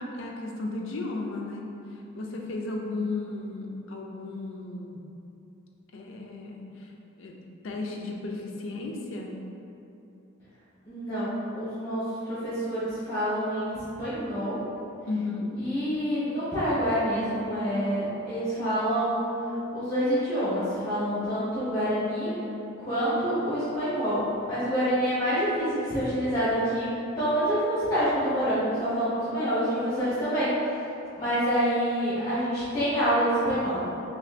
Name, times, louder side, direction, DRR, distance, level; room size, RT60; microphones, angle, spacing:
voice 1, 0.0-1.7 2.1-5.0 5.9-6.9 7.2-7.4 7.6-9.3 15.1-15.5, left 3 dB, 70° left, 0 dB, 0.5 m, -34 dB
voice 2, 10.8-14.6 15.6-19.3 19.7-22.3 22.8-26.9 27.1-30.5 31.1-33.8, equal, 20° left, -15 dB, 1.4 m, -27 dB
4.2 x 3.2 x 2.5 m, 2.9 s
head